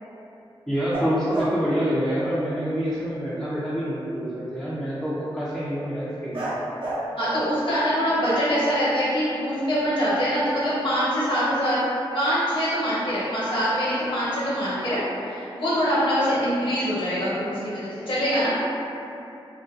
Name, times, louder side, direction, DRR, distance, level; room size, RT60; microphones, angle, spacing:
voice 1, 0.7-6.4, equal, 5° left, -10 dB, 0.4 m, -26 dB
sound 1, 0.9-1.6 6.3-7.4 8.2-9.2, right 1 dB, 60° right, 0.5 m, -31 dB
voice 2, 7.2-11.8 12.1-15.0 15.3-18.5, equal, 60° left, -10 dB, 1.0 m, -24 dB
2.5 x 2.2 x 2.4 m, 2.8 s
wide cardioid pair, 100°, 10 cm